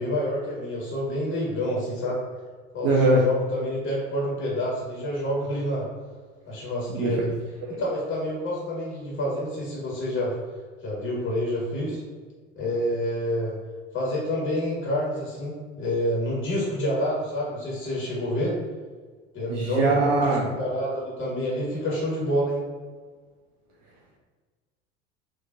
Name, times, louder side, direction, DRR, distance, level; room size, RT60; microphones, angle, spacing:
voice 1, 0.0-2.2 2.7-5.9 6.5-7.3 7.7-10.4 10.8-12.0 12.6-13.6 13.9-18.6 19.3-22.6, equal, 30° left, -4 dB, 1.5 m, -28 dB
voice 2, 2.8-3.3 6.9-7.2 19.5-20.4, right 2 dB, 45° right, -2 dB, 0.8 m, -21 dB
6.3 x 3.0 x 2.4 m, 1.5 s
figure-of-eight pair, 70°, 38 cm